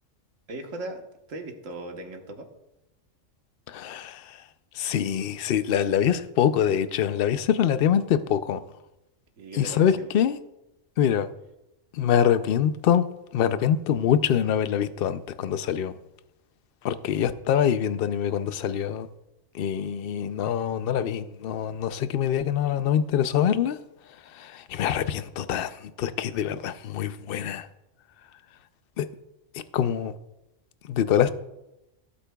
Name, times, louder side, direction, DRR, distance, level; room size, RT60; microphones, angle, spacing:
voice 1, 0.5-1.0 1.3-2.5 9.4-10.1, right 2 dB, 85° right, 1.6 m, -38 dB
voice 2, 3.7-4.4 4.7-8.6 9.5-10.4 11.0-11.3 11.9-13.1 13.3-15.9 16.8-19.1 19.5-23.8 24.3-27.7 29.0-29.1 29.5-30.1 30.9-31.3, left 9 dB, 60° left, 0.7 m, -24 dB
17.0 x 8.5 x 2.3 m
omnidirectional pair, 1.3 m